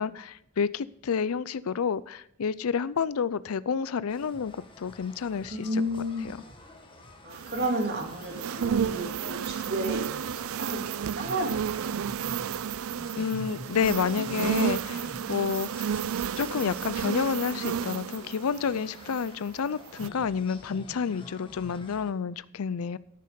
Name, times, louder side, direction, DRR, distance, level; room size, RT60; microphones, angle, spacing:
voice 1, 0.0-5.7 13.2-15.9 16.4-23.0, left 6 dB, 85° left, 18 dB, 0.5 m, -29 dB
sound 1, 4.1-22.1, left 1 dB, 25° left, 1.3 m, -48 dB
voice 2, 5.5-6.5 7.2-12.0, right 1 dB, 50° right, 2 dB, 2.5 m, -32 dB
sound 2, 7.3-19.5 19.9-20.1, right 8 dB, 75° right, 0.4 m, -32 dB
13.0 x 6.6 x 5.1 m, 0.77 s
head